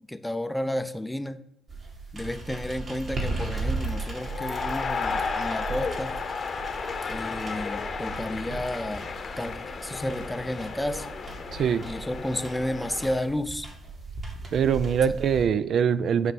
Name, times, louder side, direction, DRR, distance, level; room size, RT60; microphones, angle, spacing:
voice 1, 0.1-1.4 2.1-6.2 7.1-9.1 9.4-11.1 11.8-13.7, left 1 dB, 10° left, 11 dB, 0.5 m, -32 dB
sound 1, 1.7-15.4, right 3 dB, 45° right, 2.0 m, -37 dB
sound 2, 3.2-13.2, left 5 dB, 45° left, 0.8 m, -34 dB
voice 2, 11.5-11.9 14.5-16.3, right 7 dB, 60° right, 14 dB, 0.4 m, -23 dB
9.3 x 3.3 x 5.2 m, 0.79 s
cardioid pair, 90°, 0 cm